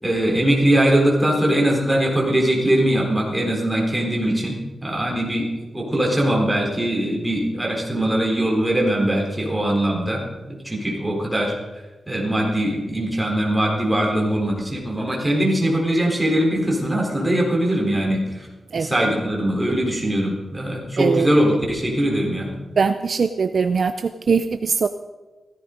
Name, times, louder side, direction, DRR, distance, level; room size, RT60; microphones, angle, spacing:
voice 1, 0.0-4.6 4.8-5.5 5.7-10.2 10.5-11.6 12.1-18.5 18.8-22.5, right 1 dB, 5° right, -3 dB, 4.1 m, -21 dB
voice 2, 21.0-21.3 22.8-24.9, right 5 dB, 45° right, 9 dB, 0.5 m, -21 dB
16.5 x 14.0 x 5.2 m, 1.2 s
wide cardioid pair, 170°, 0 cm